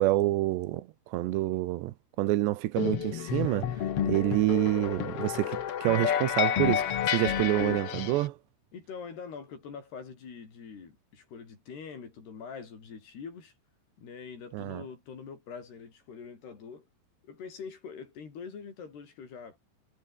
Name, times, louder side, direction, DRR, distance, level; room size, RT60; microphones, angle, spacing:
voice 1, 0.0-8.4 14.5-14.8, right 16 dB, 80° right, 3.1 m, -28 dB
sound 1, 2.8-8.3, left 10 dB, 85° left, 1.2 m, -30 dB
voice 2, 8.7-13.5 14.0-16.9 17.2-19.6, left 6 dB, 65° left, 7.1 m, -44 dB
omnidirectional pair, 5.0 m